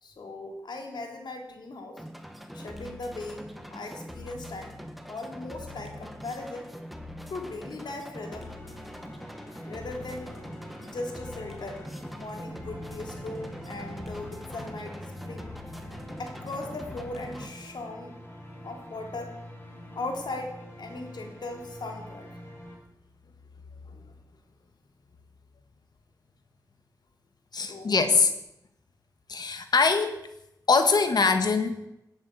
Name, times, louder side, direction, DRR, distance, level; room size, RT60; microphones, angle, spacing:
voice 1, 0.0-2.0 2.5-4.8 5.1-6.7 7.3-8.5 9.7-10.3 10.8-11.8 12.1-15.6 16.2-18.2 18.6-19.4 19.9-22.3 23.9-24.0 27.5-28.0, left 2 dB, 90° left, 3 dB, 3.4 m, -38 dB
sound 1, 2.0-17.5, left 1 dB, ahead, 1.5 m, -43 dB
sound 2, 8.3-22.8, equal, 30° left, 5.1 m, -45 dB
voice 2, 27.5-28.3 29.3-30.3 30.7-31.8, left 4 dB, 70° left, 8 dB, 1.9 m, -23 dB
18.0 x 9.6 x 8.2 m, 0.85 s
wide cardioid pair, 115°, 7 cm